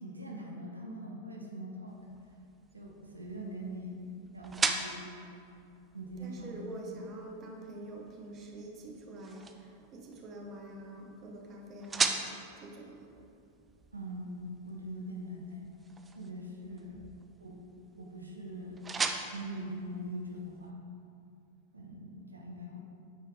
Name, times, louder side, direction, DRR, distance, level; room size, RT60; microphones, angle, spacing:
voice 1, 0.0-2.0 2.7-4.0 4.3-5.1 5.9-6.6 6.9-7.0 13.9-15.7 16.1-17.0 17.4-17.6 18.0-18.8 19.3-20.8 21.7-22.8, right 1 dB, 80° right, -1 dB, 0.9 m, -42 dB
sound 1, 1.9-20.7, right 4 dB, 15° right, 0.5 m, -40 dB
voice 2, 6.2-12.2 12.6-13.1, right 2 dB, 30° right, 0 dB, 1.0 m, -46 dB
9.7 x 4.5 x 3.6 m, 2.6 s
figure-of-eight pair, 90°, 0 cm